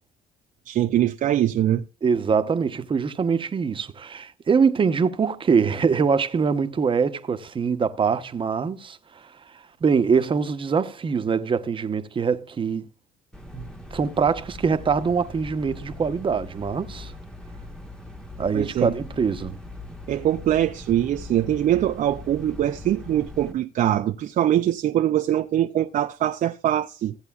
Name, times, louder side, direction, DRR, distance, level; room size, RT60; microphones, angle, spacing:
voice 1, 0.7-1.8 18.5-18.9 20.1-27.2, right 12 dB, 50° right, 0.5 m, -23 dB
voice 2, 2.0-9.3 9.8-12.9 13.5-17.1 18.4-19.6, right 5 dB, 30° right, 0.9 m, -23 dB
sound 1, 13.3-23.5, left 2 dB, 5° left, 1.2 m, -40 dB
16.0 x 8.1 x 2.4 m
cardioid pair, 110°, 17 cm